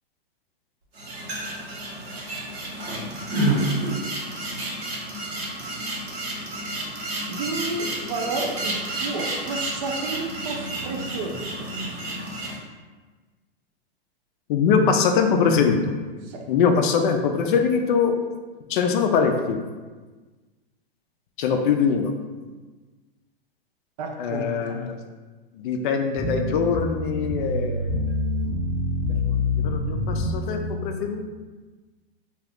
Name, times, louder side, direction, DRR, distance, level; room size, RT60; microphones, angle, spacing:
sound 1, 0.9-12.5, right 1 dB, 85° right, 1.1 m, -30 dB
voice 1, 7.3-11.8 16.2-16.5 24.0-24.9, right 3 dB, 45° right, 3 dB, 0.4 m, -31 dB
voice 2, 14.5-15.9 16.5-18.2 18.7-19.6 21.4-22.1 24.2-24.9 25.5-28.0 29.1-31.2, left 6 dB, 55° left, 5 dB, 0.4 m, -22 dB
sound 2, 26.2-30.7, left 2 dB, 10° left, 0.6 m, -26 dB
2.4 x 2.4 x 3.4 m, 1.3 s
hypercardioid pair, 125°, 30 cm